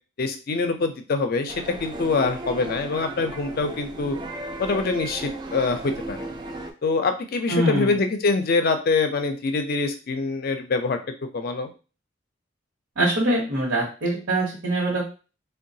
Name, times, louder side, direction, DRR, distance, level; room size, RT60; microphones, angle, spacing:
voice 1, 0.2-4.2 4.6-6.3 6.8-11.0 11.3-11.7, left 4 dB, 50° left, 7 dB, 0.4 m, -24 dB
sound 1, 1.5-6.7, right 2 dB, 25° right, 0.4 m, -35 dB
voice 2, 7.5-8.0 13.0-15.0, right 1 dB, 85° right, -4 dB, 1.0 m, -23 dB
3.7 x 2.2 x 2.6 m, 0.34 s
head